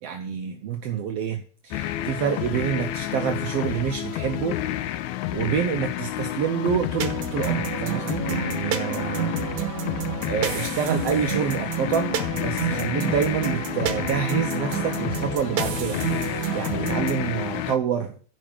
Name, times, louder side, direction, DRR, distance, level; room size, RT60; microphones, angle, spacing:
voice 1, 0.0-5.0 5.3-9.4 9.8-18.1, right 8 dB, 65° right, 4 dB, 1.8 m, -28 dB
sound 1, 1.7-17.8, left 13 dB, 85° left, 2.0 m, -30 dB
sound 2, 7.0-17.3, right 11 dB, 85° right, 2.5 m, -30 dB
12.5 x 5.4 x 7.2 m, 0.42 s
omnidirectional pair, 3.3 m